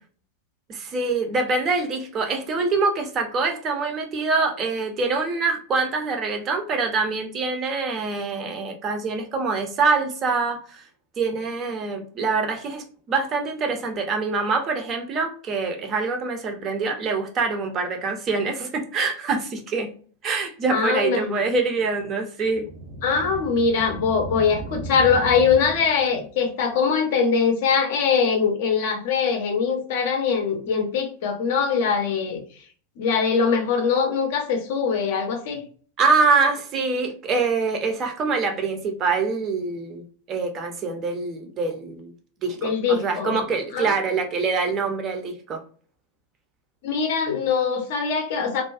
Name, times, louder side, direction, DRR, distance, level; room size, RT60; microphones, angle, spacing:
voice 1, 0.7-10.8 11.2-19.9 20.2-22.7 36.0-42.1 42.4-45.6, right 4 dB, 30° right, 4 dB, 0.6 m, -25 dB
voice 2, 20.7-21.4 23.0-32.4 33.0-35.6 42.6-43.4 43.7-43.9 46.8-48.6, left 6 dB, 50° left, 5 dB, 0.5 m, -22 dB
sound 1, 22.5-26.3, right 3 dB, 60° right, 0.9 m, -35 dB
2.4 x 2.2 x 2.3 m, 0.43 s
figure-of-eight pair, 90°, 0 cm